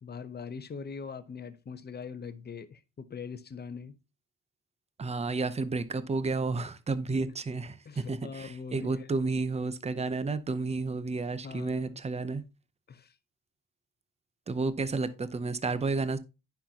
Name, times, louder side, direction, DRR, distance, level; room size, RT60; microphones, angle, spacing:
voice 1, 0.0-3.9 7.9-9.1 11.4-12.0 12.9-13.1, left 5 dB, 30° left, 0.8 m, -42 dB
voice 2, 5.0-12.4 14.5-16.2, right 3 dB, 20° right, 0.6 m, -31 dB
9.9 x 5.8 x 2.8 m
cardioid pair, 130°, 35 cm